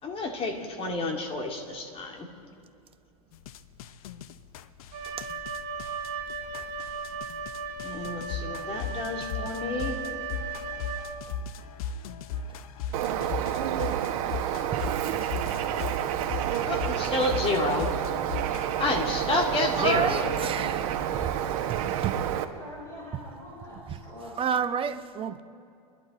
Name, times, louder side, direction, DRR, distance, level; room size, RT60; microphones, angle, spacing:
voice 1, 0.0-2.3 7.8-10.0 16.6-17.9 18.8-20.6, left 2 dB, 30° left, 2.5 m, -30 dB
sound 1, 3.3-18.7, left 5 dB, 70° left, 0.8 m, -37 dB
Wind instrument woodwind instrument, 4.9-11.5, right 4 dB, 45° right, 2.1 m, -36 dB
Bird, 12.9-22.4, right 10 dB, 65° right, 1.2 m, -29 dB
voice 2, 19.8-21.3 21.7-22.3 23.1-23.2 23.9-24.0 24.4-25.4, right 8 dB, 30° right, 0.9 m, -30 dB
voice 3, 22.6-25.0, equal, 15° left, 4.5 m, -44 dB
29.0 x 11.5 x 4.2 m
hypercardioid pair, 100°, 19 cm